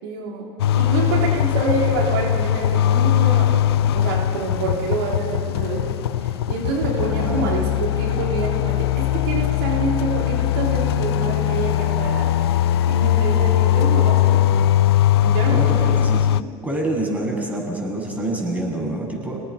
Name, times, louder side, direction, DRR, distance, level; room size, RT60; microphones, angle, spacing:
voice 1, 0.0-3.6 3.9-12.3 12.9-14.4 15.2-15.7, right 3 dB, 70° right, -1 dB, 3.8 m, -27 dB
sound 1, 0.6-16.4, left 11 dB, 75° left, 0.5 m, -20 dB
voice 2, 15.5-16.3 16.6-19.4, right 1 dB, 10° right, -1 dB, 7.6 m, -26 dB
29.0 x 19.0 x 5.9 m, 2.4 s
hypercardioid pair, 75°, 13 cm